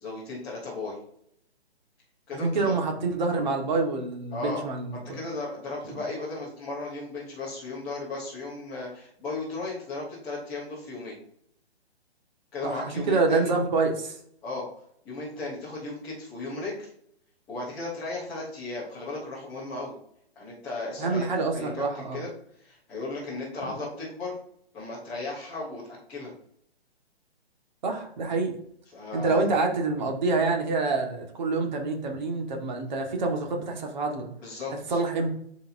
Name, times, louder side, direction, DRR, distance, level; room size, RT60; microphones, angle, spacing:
voice 1, 0.0-1.0 2.3-2.7 4.3-11.1 12.5-13.5 14.4-14.7 15.0-16.9 17.5-19.9 20.4-21.3 21.5-21.8 22.1-22.3 22.6-24.4 24.7-26.3 28.9-29.5 34.4-35.0, left 3 dB, 5° left, -11 dB, 0.5 m, -35 dB
voice 2, 2.3-5.2 5.8-6.0 12.6-14.2 21.0-22.3 23.6-23.8 27.8-28.6 29.1-34.3 34.7-35.3, right 3 dB, 40° right, 2 dB, 1.6 m, -27 dB
11.5 x 4.3 x 2.7 m, 0.70 s
hypercardioid pair, 160°, 33 cm